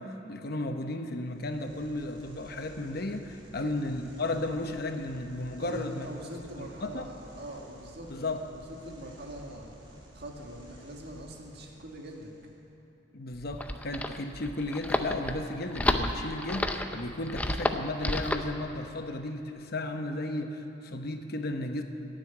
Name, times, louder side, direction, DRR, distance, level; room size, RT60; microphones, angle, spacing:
voice 1, 0.0-6.0 6.6-7.1 8.1-8.4 13.1-21.8, left 2 dB, 55° left, 6 dB, 1.0 m, -34 dB
sound 1, 1.2-12.6, right 1 dB, 25° right, 2.8 m, -53 dB
voice 2, 5.6-12.3, right 1 dB, 60° right, 0 dB, 2.0 m, -43 dB
sound 2, 13.3-18.5, left 1 dB, 10° left, 0.6 m, -30 dB
16.0 x 7.8 x 9.9 m, 2.9 s
head